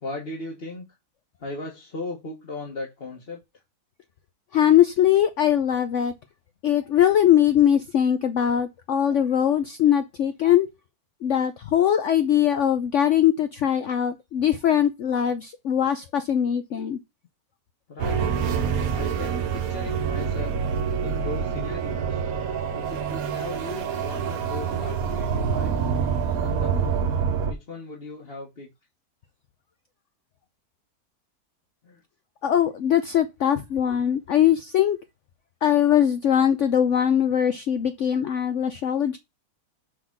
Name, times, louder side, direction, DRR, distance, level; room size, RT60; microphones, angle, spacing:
voice 1, 0.0-0.9 1.4-3.4 17.9-18.4 18.9-20.6 21.0-22.2 22.7-25.9 26.4-26.9 27.4-28.7 31.8-32.0, left 2 dB, 40° left, 1.6 m, -37 dB
voice 2, 4.5-6.1 6.6-10.7 11.2-17.0 32.4-35.0 35.6-39.2, left 10 dB, 60° left, 0.9 m, -21 dB
sound 1, 18.0-27.5, right 6 dB, 65° right, 1.3 m, -26 dB
6.2 x 3.9 x 6.0 m
omnidirectional pair, 1.7 m